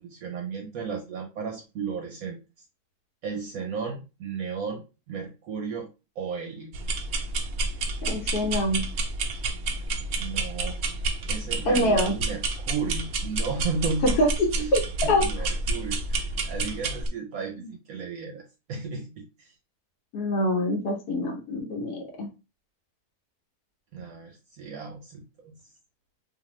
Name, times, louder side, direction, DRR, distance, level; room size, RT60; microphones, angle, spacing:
voice 1, 0.0-2.4 3.2-4.8 5.1-5.9 6.2-6.7 10.2-10.8 11.3-14.2 14.6-14.7 15.0-19.5 23.9-25.6, right 5 dB, 70° right, 3 dB, 0.9 m, -34 dB
sound 1, 6.7-17.1, right 2 dB, 90° right, 0.5 m, -30 dB
voice 2, 8.1-8.8 11.6-12.1 14.0-14.3 14.7-14.8 15.1-15.2 17.6-17.7 20.1-22.3, left 1 dB, 75° left, 2 dB, 1.3 m, -25 dB
2.5 x 2.4 x 3.0 m, 0.29 s
omnidirectional pair, 1.7 m